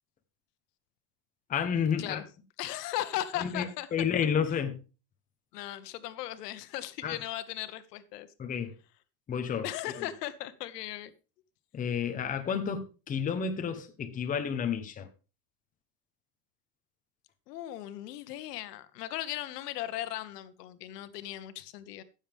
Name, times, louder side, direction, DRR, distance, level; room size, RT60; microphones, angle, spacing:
voice 1, 1.5-2.2 3.4-4.8 7.0-7.1 8.4-8.7 9.3-9.7 11.7-15.1, left 7 dB, 15° left, 0.9 m, -30 dB
voice 2, 2.6-3.9 5.5-8.3 9.6-11.1 17.5-22.0, left 13 dB, 90° left, 1.2 m, -37 dB
15.0 x 7.2 x 3.5 m
supercardioid pair, 150°, 46 cm